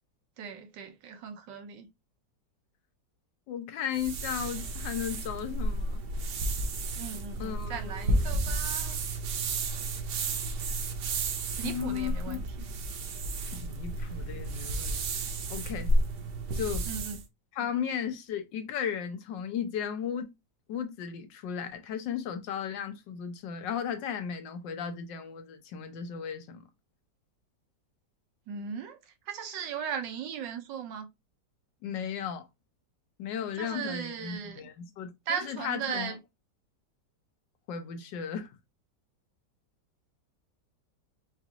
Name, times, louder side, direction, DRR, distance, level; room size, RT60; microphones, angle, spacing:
voice 1, 0.4-1.9 7.0-9.0 11.6-12.5 16.9-17.2 28.5-29.0 29.3-31.1 33.6-34.7 35.3-36.2, right 7 dB, 90° right, 1.5 m, -37 dB
voice 2, 3.5-6.0 7.4-8.2 11.6-12.4 13.5-15.0 15.5-15.9 16.5-16.9 17.5-20.3 20.7-26.6 31.8-32.5 33.2-36.1 37.7-38.5, left 8 dB, 90° left, 1.4 m, -35 dB
sound 1, 3.9-17.2, right 2 dB, 70° right, 1.4 m, -32 dB
5.0 x 2.5 x 2.8 m
omnidirectional pair, 1.9 m